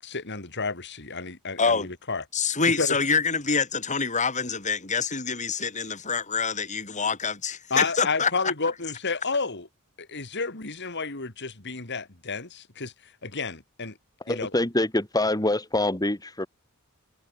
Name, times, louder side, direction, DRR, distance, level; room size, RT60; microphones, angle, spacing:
voice 1, 0.0-2.2 2.7-3.0 7.7-9.7 10.0-14.0 14.3-14.5, left 4 dB, 55° left, 3.7 m, -31 dB
voice 2, 1.6-1.9 2.3-8.3, left 5 dB, 35° left, 3.8 m, -26 dB
voice 3, 14.2-16.5, left 1 dB, 20° left, 2.5 m, -25 dB
head